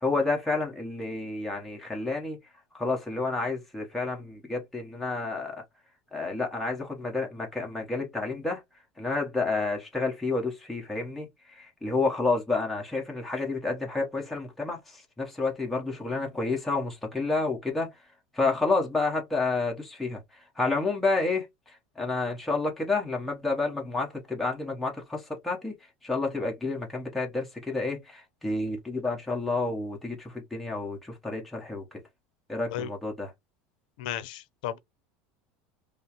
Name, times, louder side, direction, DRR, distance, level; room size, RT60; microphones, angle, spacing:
voice 1, 0.0-2.4 2.8-5.6 6.1-8.6 9.0-17.9 18.3-20.2 20.6-25.7 26.0-31.8 32.5-33.3, left 3 dB, 5° left, 1.0 m, -30 dB
voice 2, 34.0-34.8, left 11 dB, 75° left, 0.6 m, -34 dB
5.3 x 2.0 x 3.0 m
cardioid pair, 170°, 5 cm